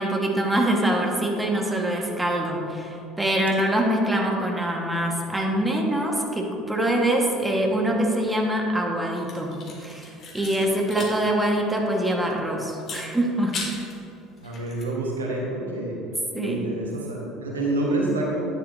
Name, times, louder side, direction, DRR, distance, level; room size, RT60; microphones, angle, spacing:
voice 1, 0.0-9.5 9.8-13.5 16.3-16.7, right 1 dB, 10° right, 0 dB, 1.4 m, -24 dB
sound 1, 9.2-11.2 11.5-11.6 12.8-14.0 14.4-14.8, left 4 dB, 40° left, 1.8 m, -37 dB
voice 2, 14.4-16.0 16.4-18.4, right 2 dB, 80° right, -2 dB, 1.2 m, -27 dB
10.0 x 9.7 x 2.7 m, 2.9 s
figure-of-eight pair, 60°, 0 cm